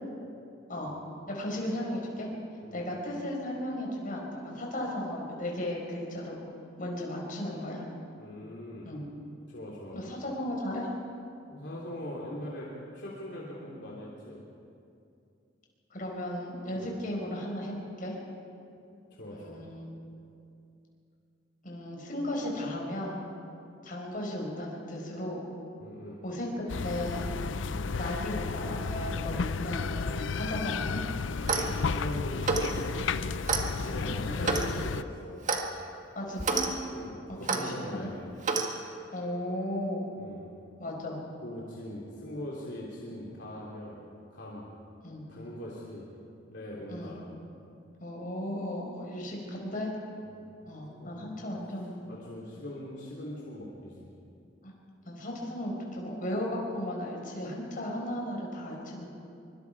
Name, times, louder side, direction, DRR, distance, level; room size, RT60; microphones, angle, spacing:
voice 1, 1.3-2.3 2.7-6.4 6.8-7.8 8.8-9.1 9.9-10.9 15.9-18.2 19.3-19.9 21.6-23.2 23.8-25.4 26.2-27.3 28.0-31.0 34.0-34.1 34.4-34.6 36.1-36.7 37.3-38.1 39.1-40.0 40.8-41.2 43.1-43.2 45.0-45.3 46.9-47.2 48.0-49.9 50.7-52.0 54.6-54.7 55.0-59.1, left 1 dB, 45° left, -1 dB, 5.1 m, -35 dB
voice 2, 8.2-8.9 9.5-10.0 11.5-14.4 16.7-16.9 19.1-19.7 25.8-26.2 27.7-27.9 31.7-33.4 33.8-35.4 36.9-38.1 40.2-40.5 41.4-44.0 44.3-44.7 45.3-46.1 46.5-47.2 50.3-50.5 50.8-51.2 52.1-54.1, left 1 dB, 65° left, -5 dB, 3.2 m, -41 dB
sound 1, 26.7-35.0, left 5 dB, 85° left, 0.6 m, -33 dB
Clock, 31.3-31.8 32.4-32.7 33.5-33.7 34.4-34.7 35.5-35.6 36.4-36.7 37.5-37.6 38.4-38.7, right 4 dB, 45° right, 1.7 m, -28 dB
24.0 x 24.0 x 4.8 m, 2.6 s
head